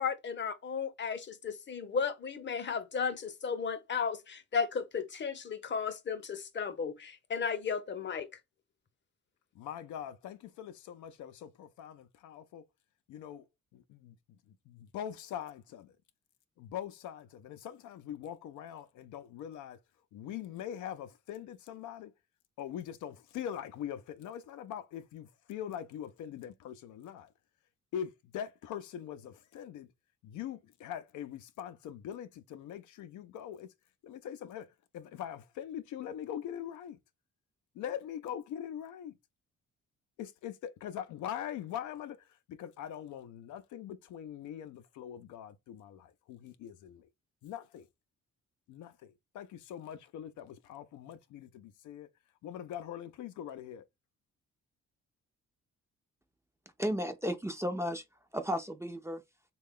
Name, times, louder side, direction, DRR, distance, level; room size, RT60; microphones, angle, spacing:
voice 1, 0.0-8.3, left 6 dB, 40° left, 0.7 m, -34 dB
voice 2, 9.5-12.6 13.1-13.4 13.7-14.4 14.7-15.9 16.6-19.8 20.1-22.1 22.6-27.3 27.9-29.9 30.2-33.7 34.0-37.0 37.7-39.1 40.2-47.1 47.4-47.9 48.7-52.1 52.4-53.8, left 10 dB, 80° left, 0.5 m, -42 dB
voice 3, 56.8-58.0 58.3-59.2, equal, 10° right, 0.5 m, -34 dB
3.2 x 2.3 x 3.6 m
cardioid pair, 90°, 30 cm